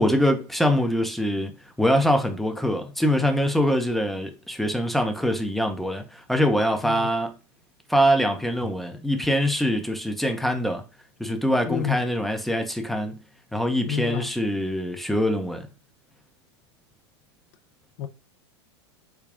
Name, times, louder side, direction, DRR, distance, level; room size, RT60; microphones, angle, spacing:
voice 1, 0.0-1.5 1.8-7.3 7.9-10.8 11.2-13.2 13.5-15.7, equal, ahead, 0.7 m, -23 dB
voice 2, 11.7-12.0 13.9-14.3 18.0-18.1, left 9 dB, 50° left, 0.6 m, -29 dB
3.5 x 2.3 x 3.7 m
hypercardioid pair, 100°, 15 cm